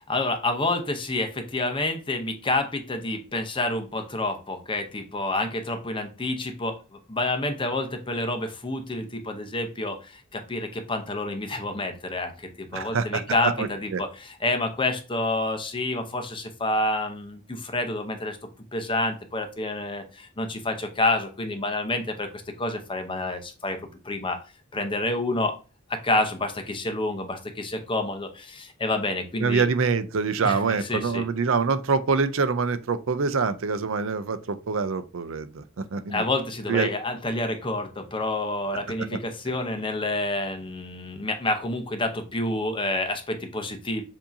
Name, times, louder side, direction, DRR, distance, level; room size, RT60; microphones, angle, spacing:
voice 1, 0.1-18.4 18.7-22.3 22.6-23.8 24.0-24.4 24.7-25.5 25.9-29.6 30.4-31.2 36.1-44.0, left 2 dB, 25° left, 0.7 m, -28 dB
voice 2, 12.7-14.0 29.4-35.6 35.9-36.2 36.7-36.9, right 5 dB, 70° right, 0.5 m, -25 dB
7.1 x 2.8 x 2.6 m
head